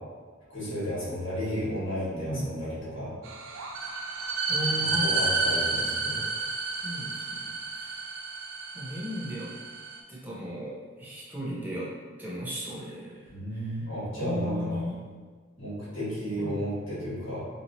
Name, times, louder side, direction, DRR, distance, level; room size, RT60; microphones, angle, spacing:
voice 1, 0.5-3.2 4.8-6.2 13.3-14.8 15.6-17.4, equal, 65° left, -9 dB, 1.5 m, -33 dB
sound 1, 3.2-10.0, right 3 dB, 70° right, 0.3 m, -31 dB
voice 2, 4.5-5.2 6.8-8.1 8.7-9.5 10.1-11.9 12.2-13.7 14.1-15.0 16.4-16.6, equal, 10° right, -7 dB, 0.7 m, -36 dB
2.9 x 2.7 x 2.7 m, 1.5 s
head